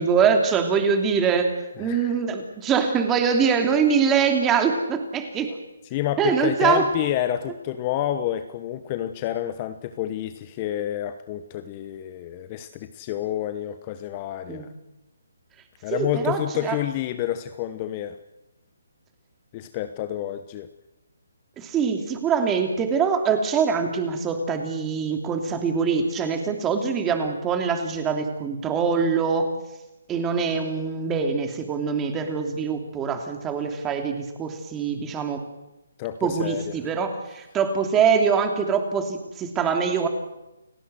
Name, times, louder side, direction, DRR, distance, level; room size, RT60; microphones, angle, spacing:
voice 1, 0.0-1.5 1.8-5.5 6.2-6.9 14.5-14.7 15.9-16.8 21.6-29.5 30.1-35.4 36.2-40.1, right 6 dB, 15° right, 5 dB, 2.9 m, -23 dB
voice 2, 1.8-2.1 5.9-14.7 15.8-18.2 19.5-20.7 36.0-36.8, left 12 dB, 25° left, 11 dB, 1.0 m, -29 dB
30.0 x 17.5 x 7.8 m, 0.97 s
hypercardioid pair, 160°, 0 cm